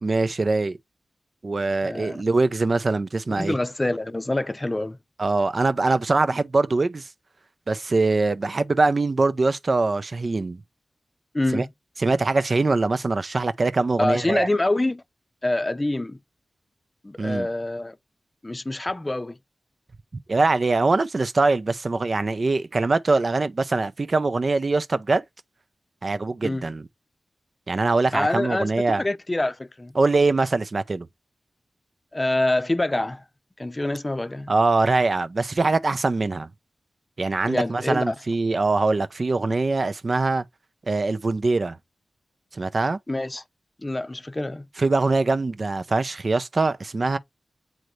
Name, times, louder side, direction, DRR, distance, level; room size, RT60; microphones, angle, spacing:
voice 1, 0.0-0.8 1.4-3.6 5.2-7.1 7.7-10.6 11.5-11.7 12.0-14.5 17.2-17.5 20.3-25.2 26.0-26.9 27.7-29.0 30.0-31.1 34.5-36.5 37.2-40.4 40.9-41.8 42.5-43.0 44.8-47.2, right 3 dB, 50° right, 0.6 m, -23 dB
voice 2, 1.8-2.2 3.3-5.0 11.3-11.7 14.0-15.0 15.4-16.2 17.0-18.0 18.4-19.4 26.4-26.6 28.1-29.9 32.1-33.2 33.6-34.5 37.4-38.2 43.1-43.4 43.8-44.7, left 2 dB, 25° left, 0.6 m, -26 dB
7.8 x 3.8 x 3.2 m
cardioid pair, 40°, 0 cm